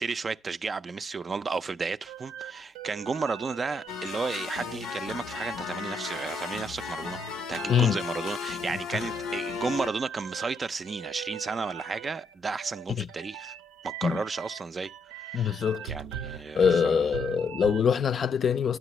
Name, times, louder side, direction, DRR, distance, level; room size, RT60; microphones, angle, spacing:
voice 1, 0.0-7.2 7.5-13.5 13.8-17.1, right 4 dB, 30° right, 0.4 m, -33 dB
sound 1, 2.1-17.8, right 10 dB, 80° right, 0.6 m, -42 dB
sound 2, 3.9-9.9, left 7 dB, 80° left, 0.7 m, -35 dB
voice 2, 15.3-15.8 16.5-18.8, left 7 dB, 45° left, 0.4 m, -24 dB
9.1 x 8.9 x 3.0 m
supercardioid pair, 85°, 0 cm